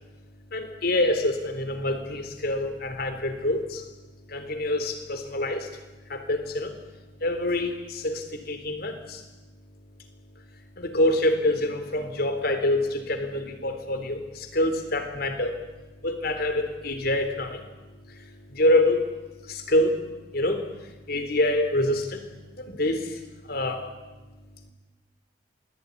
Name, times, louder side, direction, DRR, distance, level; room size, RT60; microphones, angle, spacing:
voice 1, 0.5-3.9 4.3-5.7 6.1-6.8 7.2-9.2 10.8-15.6 16.0-17.6 18.1-19.1 19.4-20.0 20.3-22.2 22.6-23.9, left 1 dB, 55° left, 8 dB, 3.7 m, -26 dB
27.5 x 20.5 x 9.8 m, 1.1 s
head